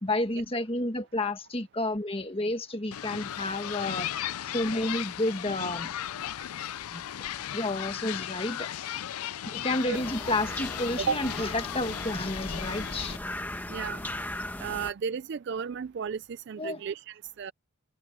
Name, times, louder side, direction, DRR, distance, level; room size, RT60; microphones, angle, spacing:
voice 1, 0.0-4.1 4.4-5.9 6.9-7.0 7.5-8.7 9.5-13.2 16.6-16.8, left 1 dB, 25° left, 1.6 m, -31 dB
sound 1, 2.9-13.2, left 11 dB, 80° left, 0.5 m, -36 dB
sound 2, 9.9-14.9, left 1 dB, 10° left, 1.2 m, -37 dB
voice 2, 13.7-14.0 14.6-17.5, right 6 dB, 50° right, 0.3 m, -33 dB
head